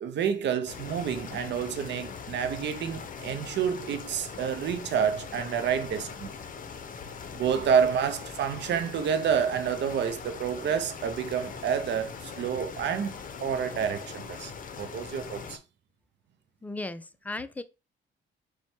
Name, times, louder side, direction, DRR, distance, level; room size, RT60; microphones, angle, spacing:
voice 1, 0.0-6.3 7.3-14.5 14.8-15.6, right 7 dB, 65° right, 0.6 m, -29 dB
sound 1, 0.7-15.6, left 6 dB, 45° left, 0.7 m, -41 dB
voice 2, 16.6-17.6, left 2 dB, 10° left, 0.4 m, -36 dB
4.4 x 2.2 x 4.3 m
cardioid pair, 90°, 20 cm